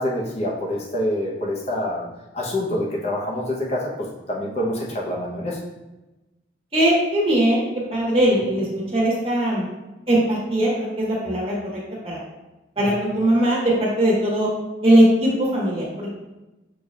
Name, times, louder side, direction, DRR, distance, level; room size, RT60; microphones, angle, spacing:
voice 1, 0.0-2.1 2.3-5.6 12.8-12.9, left 1 dB, 35° left, -3 dB, 0.8 m, -26 dB
voice 2, 6.7-7.6 7.9-9.7 10.1-11.7 12.0-12.2 12.8-14.5 14.8-16.1, right 1 dB, 30° right, -6 dB, 1.4 m, -20 dB
6.5 x 3.0 x 2.4 m, 1.0 s
head